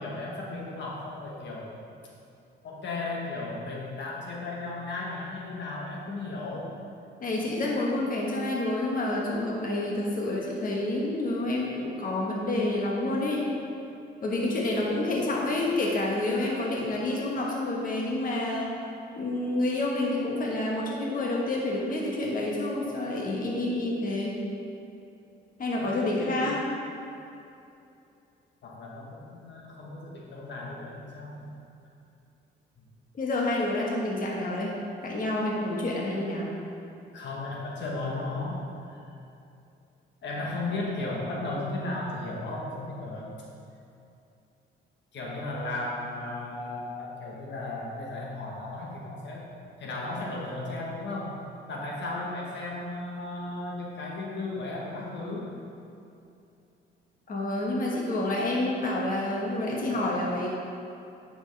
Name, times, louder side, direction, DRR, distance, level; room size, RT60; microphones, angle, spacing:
voice 1, 0.0-1.8 2.6-6.8 25.7-26.6 28.6-31.6 37.1-39.0 40.2-43.4 45.1-49.5 49.8-55.5, left 2 dB, 65° left, -3 dB, 1.4 m, -35 dB
voice 2, 7.2-13.5 14.2-18.7 19.2-24.4 25.6-26.6 33.2-34.7 35.0-36.5 57.3-60.5, left 2 dB, 45° left, -3 dB, 1.3 m, -28 dB
8.9 x 6.2 x 3.3 m, 2.7 s
cardioid pair, 90°, 20 cm